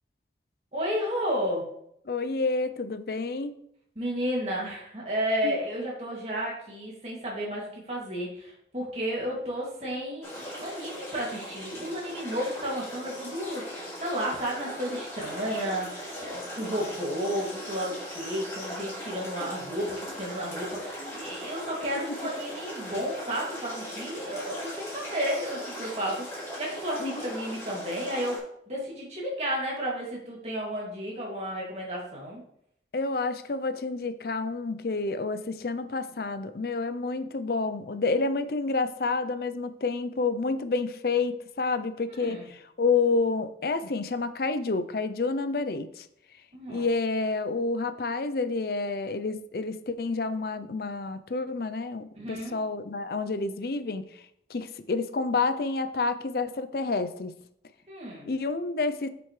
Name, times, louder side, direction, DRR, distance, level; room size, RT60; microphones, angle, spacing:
voice 1, 0.7-1.7 4.0-28.4 28.7-32.4 42.2-42.5 46.5-46.9 52.2-52.5 57.9-58.3, equal, 35° right, -3 dB, 2.4 m, -32 dB
voice 2, 2.1-3.6 5.4-5.5 27.0-27.3 32.9-46.1 46.7-54.1 54.5-57.4 58.3-59.1, left 3 dB, 55° left, 12 dB, 0.5 m, -29 dB
sound 1, 10.2-28.4, equal, 15° left, 3.1 m, -39 dB
7.9 x 6.2 x 3.2 m, 0.71 s
head